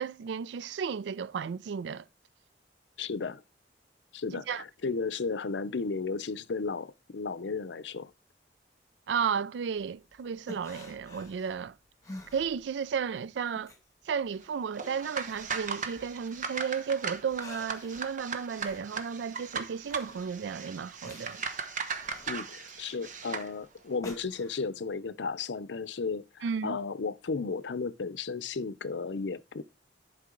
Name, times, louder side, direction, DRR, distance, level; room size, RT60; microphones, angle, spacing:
voice 1, 0.0-2.0 4.3-4.6 9.1-11.8 12.3-13.7 14.1-21.5 26.4-26.8, right 6 dB, 80° right, 0.4 m, -33 dB
voice 2, 3.0-3.4 4.1-8.1 22.3-29.6, left 4 dB, 80° left, 0.6 m, -34 dB
sound 1, 9.8-13.1 13.4-16.6 17.0-24.8, left 2 dB, 20° left, 2.1 m, -50 dB
sound 2, 14.7-23.5, right 5 dB, 45° right, 1.1 m, -38 dB
11.5 x 5.5 x 3.8 m
head